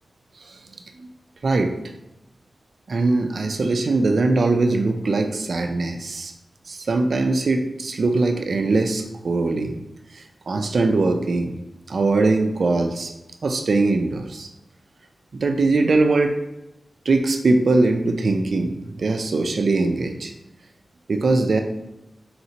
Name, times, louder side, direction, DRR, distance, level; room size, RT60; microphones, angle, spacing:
voice 1, 1.4-1.8 2.9-6.3 6.7-9.8 10.1-11.6 11.9-13.1 13.4-14.5 15.3-16.4 17.1-20.3 21.1-21.6, right 3 dB, 65° right, 5 dB, 0.4 m, -21 dB
4.1 x 3.3 x 2.8 m, 0.93 s
wide cardioid pair, 90°, 0 cm